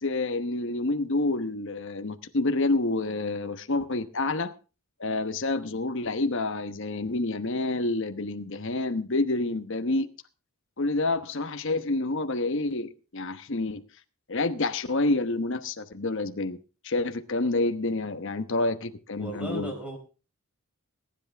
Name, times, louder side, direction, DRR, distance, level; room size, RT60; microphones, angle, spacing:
voice 1, 0.0-4.5 5.0-10.1 10.8-13.8 14.3-16.6 16.8-19.7, left 2 dB, 55° left, 1.0 m, -28 dB
voice 2, 19.2-20.0, right 1 dB, 5° right, 4.2 m, -35 dB
21.0 x 10.5 x 3.4 m
head